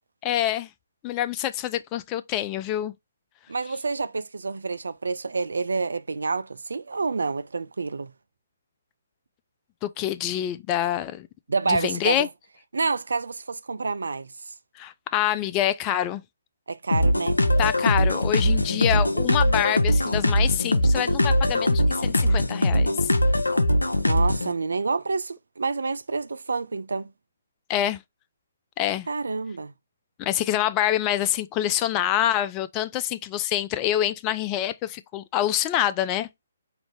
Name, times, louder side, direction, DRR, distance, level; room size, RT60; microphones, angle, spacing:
voice 1, 0.2-0.7 1.0-2.9 9.8-11.3 11.7-12.3 14.8-16.2 17.6-23.1 27.7-28.0 28.8-29.1 30.2-36.3, left 12 dB, 20° left, 0.3 m, -26 dB
voice 2, 3.5-8.1 11.5-12.3 12.7-14.5 16.7-17.4 24.0-27.1 29.1-29.7, right 4 dB, 65° right, 0.3 m, -28 dB
sound 1, 16.9-24.5, left 1 dB, 80° left, 0.5 m, -21 dB
4.9 x 2.6 x 3.1 m
figure-of-eight pair, 135°, 0 cm